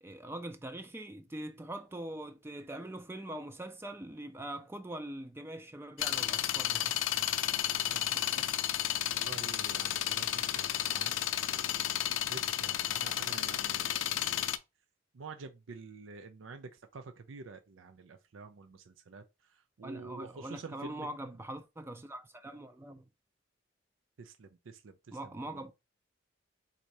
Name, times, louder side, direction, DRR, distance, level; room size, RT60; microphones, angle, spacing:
voice 1, 0.0-6.9 8.1-8.6 19.8-23.1 25.1-25.7, right 1 dB, 15° right, 0.4 m, -43 dB
sound 1, 6.0-14.6, left 11 dB, 80° left, 0.4 m, -32 dB
voice 2, 7.1-8.5 9.1-11.1 11.5-14.5 15.1-21.2 24.2-25.6, right 4 dB, 90° right, 0.5 m, -49 dB
4.2 x 2.7 x 4.6 m
head